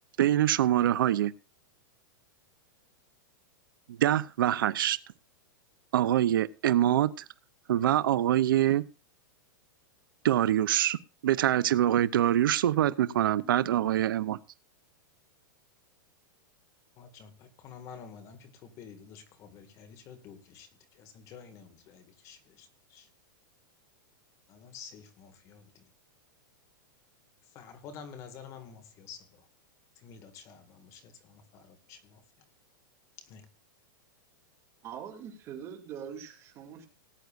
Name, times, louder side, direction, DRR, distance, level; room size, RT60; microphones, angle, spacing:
voice 1, 0.2-1.3 3.9-5.0 5.9-7.2 7.7-8.8 10.2-14.4, right 12 dB, 80° right, 0.7 m, -25 dB
voice 2, 17.0-20.7 21.0-23.1 24.5-25.8 27.6-29.3 30.0-32.2 33.2-33.5, left 7 dB, 25° left, 1.9 m, -49 dB
voice 3, 34.8-36.9, right 8 dB, 25° right, 2.4 m, -43 dB
19.0 x 9.4 x 2.5 m
supercardioid pair, 165°, 11 cm